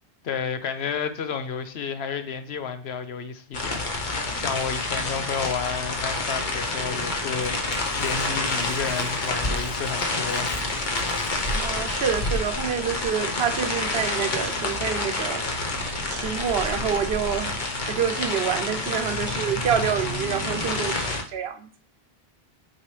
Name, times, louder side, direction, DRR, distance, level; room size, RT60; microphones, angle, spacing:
voice 1, 0.2-10.5, left 6 dB, 80° left, 1.0 m, -31 dB
sound 1, 3.5-21.2, left 2 dB, 50° left, 1.1 m, -28 dB
Hands, 7.4-12.4, left 1 dB, 30° left, 0.8 m, -38 dB
voice 2, 11.5-15.5 16.1-21.7, right 8 dB, 75° right, 1.0 m, -27 dB
8.8 x 4.6 x 3.2 m
omnidirectional pair, 1.0 m